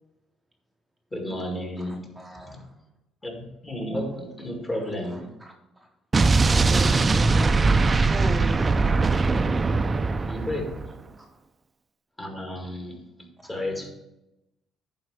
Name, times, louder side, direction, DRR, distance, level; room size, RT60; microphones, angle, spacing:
voice 1, 1.1-2.7 3.2-5.3 10.3-10.9 12.2-13.9, left 1 dB, 20° left, 2 dB, 2.0 m, -33 dB
voice 2, 2.2-2.7 4.7-4.8 5.1-5.9 6.7-7.6 8.1-8.6 11.2-11.3 13.4-13.5, equal, 5° right, 0 dB, 0.8 m, -37 dB
Explosion, 6.1-10.9, right 3 dB, 25° right, 0.4 m, -21 dB
10.5 x 4.4 x 4.8 m, 0.95 s
cardioid pair, 110°, 0 cm